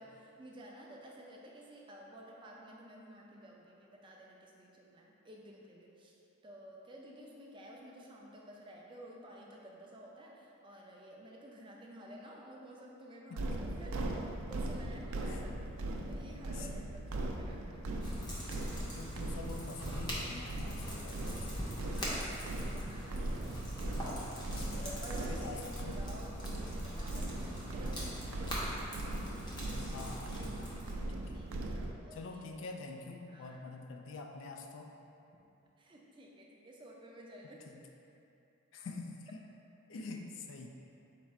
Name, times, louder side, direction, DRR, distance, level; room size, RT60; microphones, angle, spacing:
voice 1, 0.0-6.1 6.4-13.9 14.4-15.8 16.1-18.0 21.9-24.3 24.7-27.5 27.8-29.0 30.5-31.0 31.3-32.5 33.3-33.6 35.8-37.6, right 1 dB, 25° right, -2 dB, 0.4 m, -52 dB
voice 2, 13.3-13.7 15.3-15.4 16.5-17.0 19.0-22.1 24.6-25.0 25.3-26.0 29.9-31.4 32.1-35.0 37.7-37.8 38.7-39.4 39.9-40.7, left 3 dB, 65° left, 3 dB, 0.3 m, -47 dB
sound 1, 13.4-31.9, right 1 dB, 90° right, 0.4 m, -39 dB
sound 2, 18.0-30.9, equal, 20° left, 0.7 m, -43 dB
4.5 x 2.4 x 4.1 m, 2.8 s
head